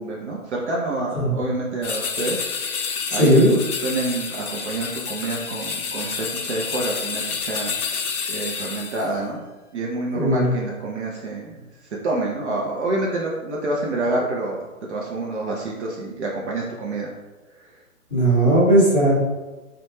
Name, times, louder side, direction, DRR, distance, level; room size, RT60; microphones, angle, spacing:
voice 1, 0.0-9.4 9.7-17.1 17.6-17.7, right 2 dB, 55° right, -2 dB, 0.5 m, -28 dB
sound 1, 1.8-9.1, left 5 dB, 85° left, 0.5 m, -29 dB
voice 2, 10.1-10.5 18.1-19.1, right 1 dB, ahead, -27 dB, 0.4 m, -17 dB
2.4 x 2.2 x 3.0 m, 1.2 s
figure-of-eight pair, 120°, 43 cm